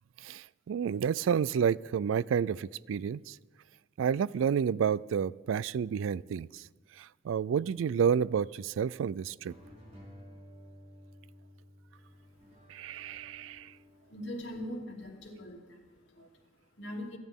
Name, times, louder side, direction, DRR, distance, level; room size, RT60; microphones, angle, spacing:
voice 1, 0.2-3.4 4.0-6.6 7.0-9.5 12.7-13.7, right 7 dB, 85° right, 21 dB, 0.3 m, -30 dB
sound 1, 9.5-15.6, equal, 35° right, 4.6 m, -55 dB
voice 2, 12.0-17.2, left 1 dB, 65° left, -1 dB, 2.8 m, -44 dB
27.0 x 10.5 x 3.6 m, 1.4 s
head